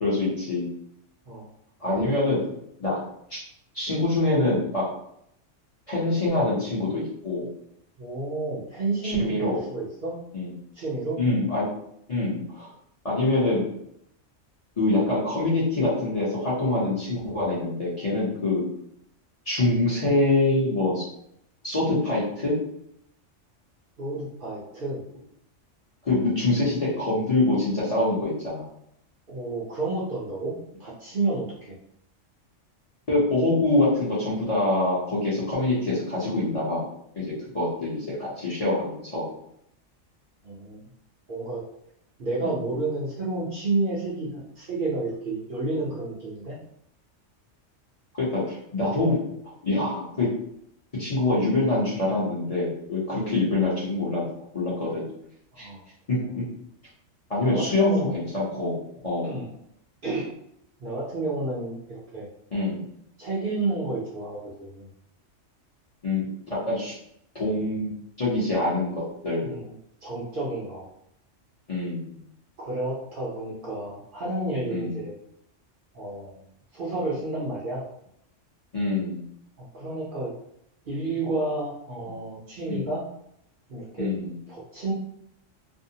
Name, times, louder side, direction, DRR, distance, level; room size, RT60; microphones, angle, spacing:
voice 1, 0.0-0.6 1.8-2.4 2.8-3.0 3.3-3.4 3.7-4.8 5.9-7.5 9.0-9.6 10.3-10.5 11.2-11.7 12.1-12.7 13.0-13.7 14.8-18.6 19.5-21.0 21.6-22.5 26.0-28.7 33.1-36.8 37.1-39.3 42.4-42.6 48.2-49.2 49.6-50.3 51.0-54.2 54.5-55.1 55.6-55.7 56.1-56.4 57.3-59.3 62.5-62.8 66.0-66.9 67.3-69.5 71.7-72.1 74.7-75.0 78.7-79.2 82.7-82.8 84.0-84.3, left 2 dB, 35° left, -8 dB, 0.7 m, -25 dB
voice 2, 8.0-10.2 10.7-11.2 24.0-25.0 29.3-30.5 30.8-31.8 40.4-40.8 41.3-41.6 42.2-46.6 55.5-55.8 57.4-58.1 59.2-59.5 60.0-60.3 60.8-62.3 63.2-64.9 69.4-69.7 70.0-70.9 72.6-75.2 75.9-76.4 76.7-77.8 79.7-80.3 80.8-83.1 83.7-84.1 84.5-84.9, right 2 dB, 50° right, -6 dB, 0.8 m, -30 dB
2.6 x 2.1 x 2.7 m, 0.72 s
omnidirectional pair, 1.3 m